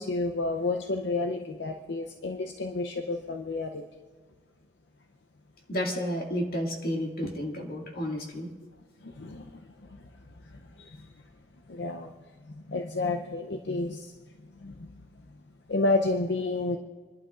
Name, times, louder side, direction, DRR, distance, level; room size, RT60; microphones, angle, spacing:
voice 1, 0.0-3.8 9.0-9.4 10.8-11.0 11.7-12.1 12.7-14.1 14.6-14.7 15.7-16.8, left 2 dB, 70° left, 4 dB, 0.6 m, -30 dB
voice 2, 5.7-8.5, equal, 55° left, 0 dB, 2.1 m, -31 dB
27.5 x 11.5 x 2.5 m, 1.4 s
head